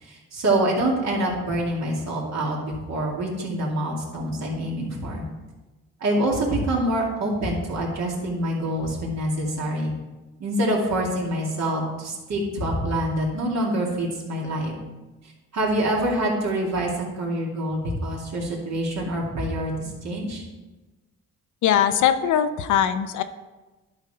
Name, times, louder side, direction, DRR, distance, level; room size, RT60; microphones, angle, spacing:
voice 1, 0.0-5.2 6.0-9.9 10.4-14.7 15.5-19.7 20.0-20.4, right 1 dB, 60° right, -2 dB, 2.5 m, -26 dB
voice 2, 21.6-23.2, left 9 dB, 75° left, 10 dB, 0.7 m, -21 dB
11.5 x 5.2 x 4.3 m, 1.2 s
cardioid pair, 90°, 30 cm